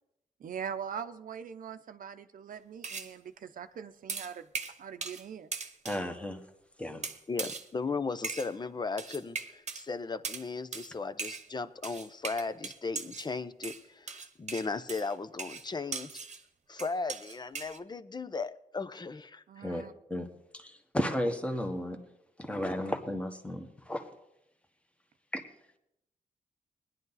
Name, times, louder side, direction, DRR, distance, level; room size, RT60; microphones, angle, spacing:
voice 1, 0.4-4.5 4.8-5.5 19.5-19.9, right 7 dB, 70° right, 0.7 m, -42 dB
sound 1, 2.8-3.1 4.1-5.3 5.5-6.0 7.0-7.7 8.2-8.5 9.0-9.8 10.2-10.5 10.7-10.9 11.2-11.5 11.8-13.3 13.6-16.4 16.8-17.8, right 5 dB, 50° right, 1.0 m, -39 dB
voice 2, 5.8-6.4 6.8-7.0 19.6-19.8 20.1-20.3 20.5-22.0 22.4-24.0 25.3-25.4, left 1 dB, 10° left, 1.5 m, -33 dB
voice 3, 7.3-16.1 16.7-19.9, left 4 dB, 30° left, 0.8 m, -36 dB
17.5 x 11.0 x 4.1 m
cardioid pair, 70°, 15 cm